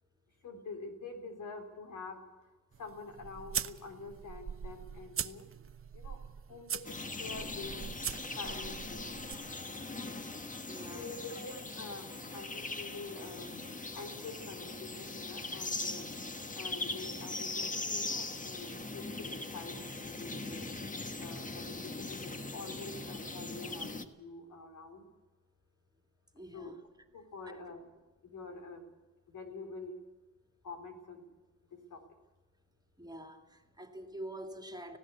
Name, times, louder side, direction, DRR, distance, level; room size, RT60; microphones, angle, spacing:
voice 1, 0.4-2.2 2.8-5.4 5.9-6.2 6.5-7.9 8.4-9.1 10.9-13.5 13.9-16.1 16.6-19.8 20.0-20.7 21.2-25.0 26.5-26.7 27.1-27.8 28.2-28.8 29.3-30.0 30.6-31.2 31.7-32.0, left 3 dB, 85° left, 5 dB, 3.7 m, -46 dB
sound 1, 2.7-9.3, right 8 dB, 45° right, 0.8 m, -42 dB
sound 2, 6.8-24.0, left 2 dB, 25° left, 1.5 m, -40 dB
voice 2, 10.6-11.5 26.3-26.8 27.4-27.6 33.0-35.0, right 1 dB, 15° right, 5 dB, 2.3 m, -46 dB
19.0 x 16.5 x 8.3 m, 1.2 s
wide cardioid pair, 110°, 30 cm